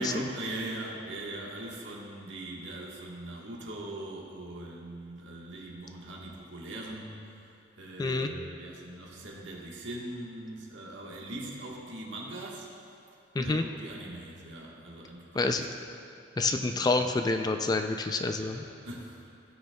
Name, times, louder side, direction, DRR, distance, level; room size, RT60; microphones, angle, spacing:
voice 1, 0.0-12.7 13.4-15.6 16.4-16.9 18.4-19.2, right 1 dB, 80° right, -2 dB, 1.4 m, -41 dB
voice 2, 8.0-8.3 13.4-13.6 15.3-15.6 16.4-18.6, left 3 dB, 20° left, 6 dB, 0.3 m, -28 dB
16.0 x 6.4 x 2.3 m, 2.6 s
head